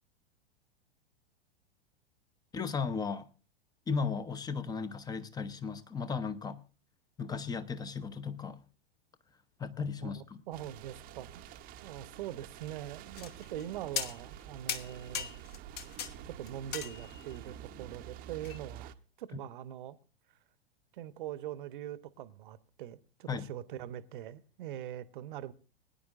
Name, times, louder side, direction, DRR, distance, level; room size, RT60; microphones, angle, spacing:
voice 1, 2.5-3.3 3.9-6.6 7.2-8.6 9.6-10.4 23.3-23.5, left 5 dB, 10° left, 0.8 m, -35 dB
sound 1, 10.5-18.9, right 10 dB, 30° right, 0.8 m, -49 dB
voice 2, 10.5-11.5 11.8-15.3 16.2-20.0 20.9-25.5, right 12 dB, 55° right, 0.9 m, -42 dB
sound 2, 13.2-13.6 14.0-14.4 14.7-16.1 16.5-17.3 18.4-18.6, left 8 dB, 30° left, 1.1 m, -38 dB
22.0 x 10.0 x 2.5 m
figure-of-eight pair, 100°, 31 cm